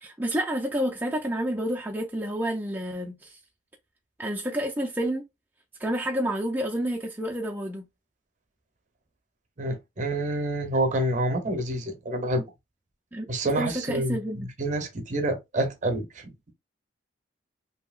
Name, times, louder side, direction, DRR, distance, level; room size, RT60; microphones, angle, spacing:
voice 1, 0.0-3.4 4.2-5.2 5.8-7.9 13.1-13.3 13.6-14.5, equal, 10° right, 0.4 m, -29 dB
voice 2, 9.6-12.4 13.3-14.2 14.6-16.5, right 1 dB, 40° right, 0.7 m, -28 dB
2.8 x 2.7 x 2.3 m
head